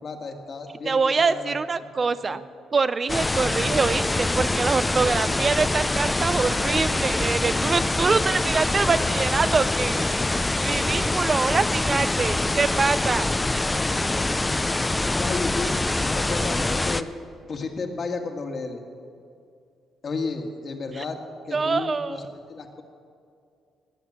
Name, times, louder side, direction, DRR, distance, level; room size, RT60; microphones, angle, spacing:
voice 1, 0.0-1.5 2.0-2.4 15.2-17.1 17.5-18.8 20.0-21.2 21.5-22.8, left 3 dB, 50° left, 4 dB, 1.8 m, -33 dB
voice 2, 0.9-2.4 2.7-10.1 10.6-13.3 15.2-15.3 21.5-22.3, right 4 dB, 35° right, 13 dB, 0.5 m, -24 dB
sound 1, 3.1-17.0, left 2 dB, 15° left, 0.5 m, -24 dB
20.0 x 8.1 x 7.3 m, 2.4 s
cardioid pair, 90°, 0 cm